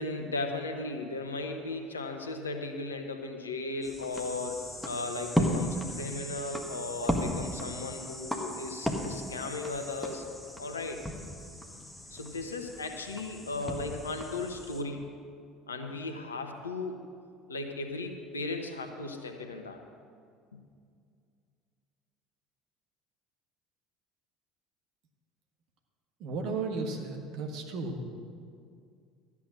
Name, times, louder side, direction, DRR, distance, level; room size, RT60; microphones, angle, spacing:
voice 1, 0.0-4.6 4.8-10.2 10.6-11.0 12.1-15.1 15.7-17.0 17.5-19.8 20.5-20.6, left 3 dB, 80° left, 5 dB, 1.0 m, -36 dB
sound 1, 3.8-14.8, equal, 5° left, 1.5 m, -36 dB
voice 2, 26.2-28.0, right 3 dB, 55° right, 3 dB, 1.5 m, -34 dB
13.0 x 8.4 x 6.2 m, 2.2 s
figure-of-eight pair, 65°, 0 cm